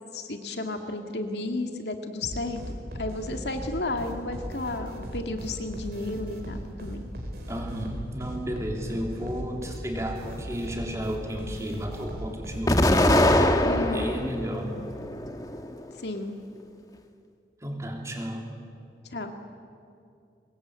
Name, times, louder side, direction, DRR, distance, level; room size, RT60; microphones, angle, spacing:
voice 1, 0.1-2.6 3.0-7.0 13.6-14.1 16.0-16.4 19.1-19.4, left 2 dB, 75° left, 5 dB, 2.1 m, -32 dB
sound 1, 2.2-13.8, equal, 60° right, 4.3 m, -38 dB
voice 2, 7.5-12.9 13.9-14.8 17.6-18.5, equal, 15° right, 1 dB, 3.2 m, -33 dB
Explosion, 12.7-14.3 14.8-15.7, left 1 dB, 20° left, 1.3 m, -22 dB
23.5 x 21.0 x 8.8 m, 2.5 s
head